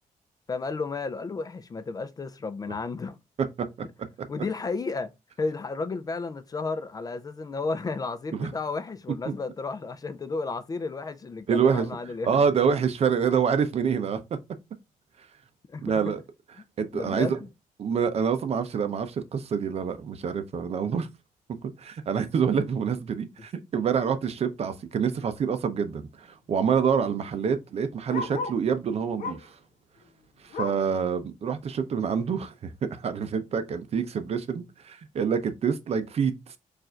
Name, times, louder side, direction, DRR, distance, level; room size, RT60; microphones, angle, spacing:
voice 1, 0.5-3.2 4.3-5.1 5.4-12.5 15.7-16.1 16.9-17.5, left 4 dB, 25° left, 0.4 m, -33 dB
voice 2, 11.5-11.9 12.3-14.4 15.8-16.2 16.8-17.4 17.8-21.1 21.6-29.6 30.4-36.6, right 6 dB, 50° right, 0.6 m, -26 dB
Bark, 26.0-28.7 29.2-29.6 30.0-31.0 31.4-31.5 31.9-32.0 32.7-32.8, left 4 dB, 85° left, 1.0 m, -37 dB
4.6 x 2.5 x 4.3 m
wide cardioid pair, 165°, 14 cm